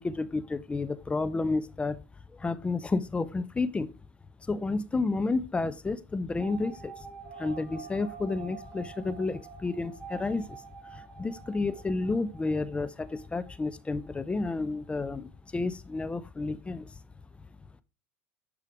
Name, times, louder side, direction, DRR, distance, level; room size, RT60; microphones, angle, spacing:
voice 1, 0.0-2.0 2.4-3.9 4.5-7.1 7.4-10.6 10.9-16.9, left 3 dB, 15° left, 0.6 m, -31 dB
sound 1, 6.4-14.9 15.2-15.3 15.4-15.5, right 7 dB, 45° right, 4.6 m, -48 dB
10.5 x 4.9 x 4.8 m
supercardioid pair, 100°, 7 cm